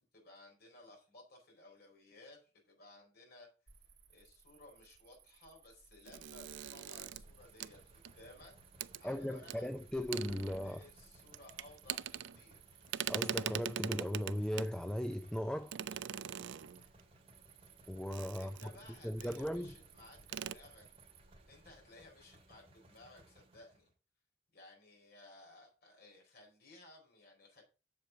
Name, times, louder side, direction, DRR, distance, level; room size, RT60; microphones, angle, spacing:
voice 1, 0.1-3.5 4.1-8.5 9.0-9.7 10.4-12.9 18.4-20.9 21.5-23.9 24.5-27.6, left 2 dB, 60° left, 4.4 m, -58 dB
Cricket, 3.7-22.6, right 6 dB, 65° right, 1.5 m, -63 dB
sound 1, 6.1-8.4 8.8-9.0 9.5-9.6 9.9-10.9 11.3-12.6 12.9-14.8 15.7-17.0 18.1-18.9 19.2-19.5 19.8-19.9 20.2-20.6, right 9 dB, 80° right, 0.4 m, -42 dB
sound 2, 7.1-23.9, right 1 dB, 35° right, 2.3 m, -64 dB
voice 2, 9.0-10.8 13.1-15.7 17.9-18.5 19.0-19.7, equal, 5° left, 0.5 m, -37 dB
7.7 x 7.0 x 4.7 m
head